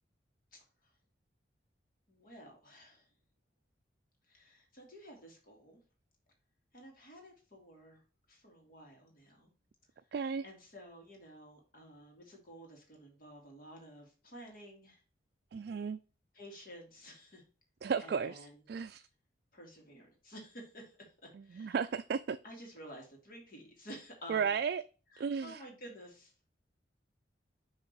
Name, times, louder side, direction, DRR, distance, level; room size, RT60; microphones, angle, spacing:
voice 1, 0.5-0.9 2.1-3.1 4.3-5.8 6.7-8.0 8.3-9.5 10.4-15.0 16.3-17.4 18.0-18.6 19.5-21.9 22.4-24.5 25.1-26.3, equal, 50° left, 2.2 m, -52 dB
voice 2, 10.1-10.4 15.5-16.0 17.8-18.4 18.7-19.0 21.6-22.4 24.3-24.8 25.2-25.6, right 6 dB, 60° right, 0.3 m, -34 dB
6.6 x 3.6 x 4.6 m
head